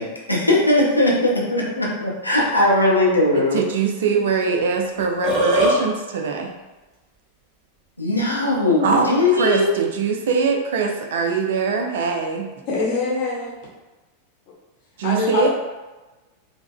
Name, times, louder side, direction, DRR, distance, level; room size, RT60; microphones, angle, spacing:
voice 1, 0.0-3.6 8.0-9.9, left 2 dB, 85° left, -3 dB, 0.5 m, -19 dB
voice 2, 3.4-6.5 8.8-12.5 15.0-15.5, right 5 dB, 60° right, 3 dB, 0.4 m, -22 dB
Burping eructation, 5.0-5.8, right 1 dB, 10° right, 1.1 m, -19 dB
voice 3, 12.7-13.6 15.0-15.5, left 3 dB, 40° left, -3 dB, 0.8 m, -23 dB
3.5 x 2.1 x 2.2 m, 1.1 s
figure-of-eight pair, 90°, 0 cm